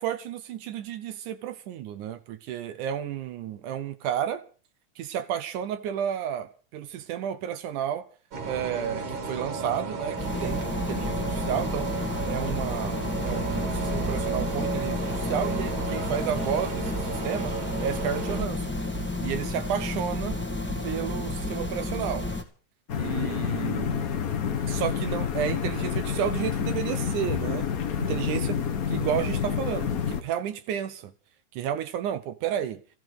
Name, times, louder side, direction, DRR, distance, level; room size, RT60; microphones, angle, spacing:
voice 1, 0.0-4.4 5.0-8.1 8.4-11.9 12.3-18.8 19.2-20.4 20.8-22.3 22.9-24.1 24.7-27.7 28.0-31.1 31.5-32.8, right 9 dB, 80° right, 2.5 m, -32 dB
sound 1, 8.3-18.4, right 4 dB, 45° right, 2.5 m, -33 dB
sound 2, 10.2-22.4, left 2 dB, 5° left, 1.3 m, -31 dB
sound 3, 22.9-30.2, left 7 dB, 70° left, 0.8 m, -28 dB
14.5 x 14.0 x 6.5 m
omnidirectional pair, 3.5 m